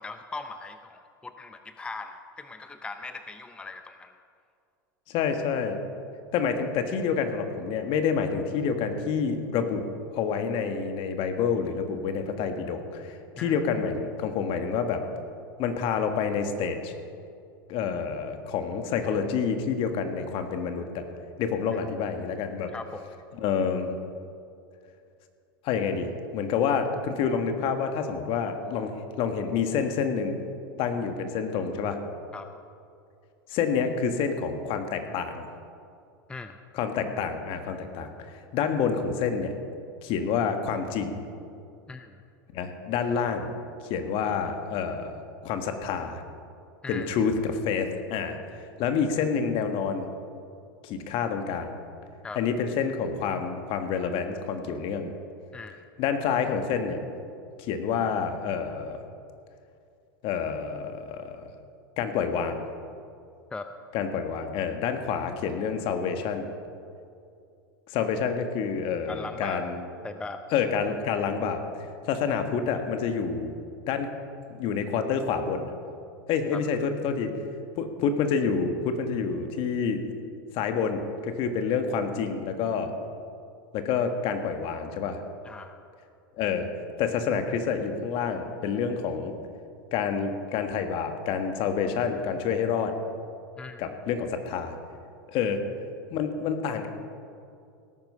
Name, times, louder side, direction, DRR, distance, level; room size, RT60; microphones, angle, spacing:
voice 1, 0.0-4.2 13.3-13.6 21.7-21.8 22.7-23.1 32.3-32.5 36.3-36.6 41.9-42.2 46.8-47.1 52.2-52.4 55.5-55.8 63.5-63.7 69.1-69.6 70.0-70.4 76.5-76.6 85.4-85.8 93.6-93.8, left 3 dB, 10° left, 8 dB, 0.5 m, -39 dB
voice 2, 5.1-5.8 6.3-9.9 10.1-15.0 15.6-16.9 17.7-21.0 21.4-22.7 23.4-23.9 25.6-30.4 30.8-32.0 33.5-35.5 36.7-39.5 40.0-41.2 42.5-43.5 43.9-45.1 45.4-46.2 46.9-50.1 50.8-51.8 52.3-55.1 56.0-57.0 57.6-59.0 60.2-61.5 62.0-62.6 63.9-66.5 67.9-69.8 70.5-73.5 73.9-74.1 74.6-75.7 76.3-77.3 77.7-80.0 80.5-82.9 83.7-85.2 86.4-86.7 87.0-89.3 89.9-93.0 93.8-94.7 95.3-95.6 96.1-96.9, left 6 dB, 50° left, 7 dB, 1.6 m, -28 dB
17.5 x 9.2 x 5.6 m, 2.5 s
hypercardioid pair, 100°, 12 cm